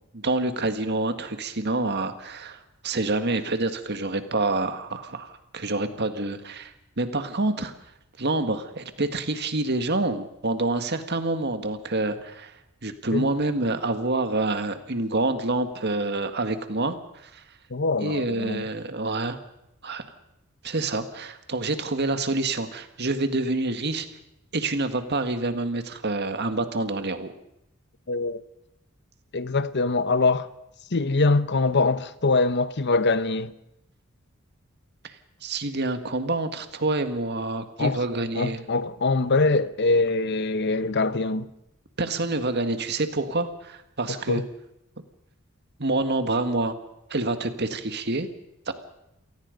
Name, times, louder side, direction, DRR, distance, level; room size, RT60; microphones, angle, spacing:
voice 1, 0.1-7.7 8.2-12.6 12.8-17.4 18.0-19.4 19.8-20.0 20.6-24.1 24.5-27.3 35.0-35.2 35.4-38.6 42.0-44.4 45.8-46.8 47.1-48.3 48.7-48.8, right 2 dB, 50° right, 1.9 m, -27 dB
voice 2, 17.7-18.6 28.1-28.4 29.3-30.5 30.9-33.5 37.8-38.0 38.3-41.5 44.3-44.4, left 3 dB, 55° left, 0.9 m, -23 dB
27.5 x 19.0 x 5.3 m
head